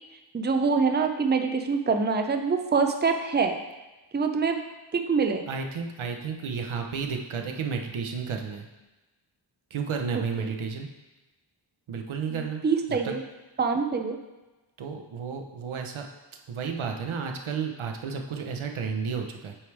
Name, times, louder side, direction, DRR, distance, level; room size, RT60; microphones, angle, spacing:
voice 1, 0.3-3.6 4.1-4.6 4.9-5.5 12.3-13.2 13.6-14.2, right 5 dB, 20° right, 6 dB, 0.5 m, -25 dB
voice 2, 5.5-8.7 9.7-10.9 11.9-12.6 12.9-13.1 14.8-16.1 16.5-19.5, right 5 dB, 90° right, 3 dB, 0.8 m, -32 dB
8.8 x 3.3 x 4.6 m, 1.1 s
wide cardioid pair, 90°, 47 cm